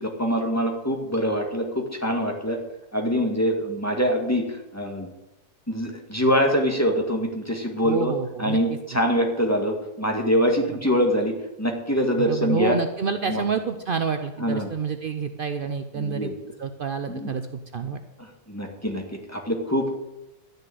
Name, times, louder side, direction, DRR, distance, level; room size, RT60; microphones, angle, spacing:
voice 1, 0.0-2.6 2.9-5.1 5.7-8.1 8.4-11.3 11.6-12.8 13.3-13.4 14.4-14.7 16.0-16.3 17.1-17.3 18.2-19.0 19.3-20.0, equal, 10° left, 2 dB, 1.8 m, -24 dB
voice 2, 7.8-8.8 12.2-16.3 16.6-17.4 17.7-18.0, right 6 dB, 70° right, 8 dB, 0.5 m, -28 dB
12.5 x 6.7 x 9.4 m, 0.98 s
omnidirectional pair, 1.8 m